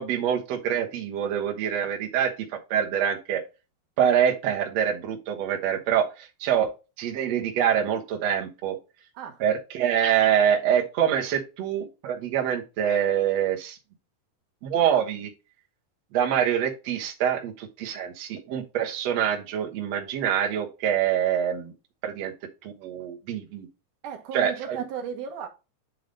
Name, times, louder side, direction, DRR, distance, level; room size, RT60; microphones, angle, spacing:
voice 1, 0.0-3.4 4.0-6.7 7.0-8.8 9.4-13.8 14.6-15.3 16.1-21.7 22.0-22.3 22.6-23.7 24.3-24.8, right 9 dB, 85° right, 1.4 m, -25 dB
voice 2, 24.0-25.5, right 7 dB, 65° right, 2.1 m, -35 dB
9.6 x 3.5 x 3.9 m
omnidirectional pair, 5.0 m